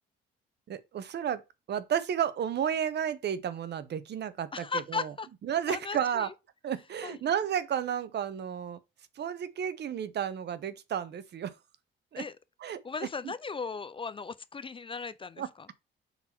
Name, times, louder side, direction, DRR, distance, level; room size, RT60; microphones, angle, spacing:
voice 1, 0.7-1.4 1.7-5.1 5.5-6.3 6.6-8.8 9.2-11.6 12.1-12.2 12.6-13.3 15.4-15.5, right 9 dB, 60° right, 0.8 m, -32 dB
voice 2, 4.5-5.3 5.7-6.3 7.0-7.2 12.2-12.4 12.7-15.7, left 5 dB, 25° left, 0.5 m, -37 dB
5.6 x 4.1 x 4.4 m
cardioid pair, 90°, 20 cm